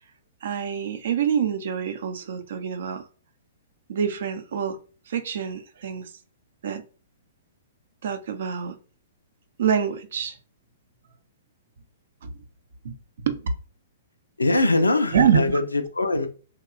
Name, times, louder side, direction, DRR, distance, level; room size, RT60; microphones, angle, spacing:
voice 1, 0.4-3.1 3.9-4.8 5.1-6.1 6.6-6.8 8.0-8.8 9.6-10.4 12.2-12.3 12.8-13.4 15.1-15.4, right 8 dB, 60° right, 0.5 m, -26 dB
voice 2, 14.4-16.3, left 2 dB, 85° left, 0.4 m, -22 dB
2.8 x 2.1 x 2.4 m
figure-of-eight pair, 115°, 0 cm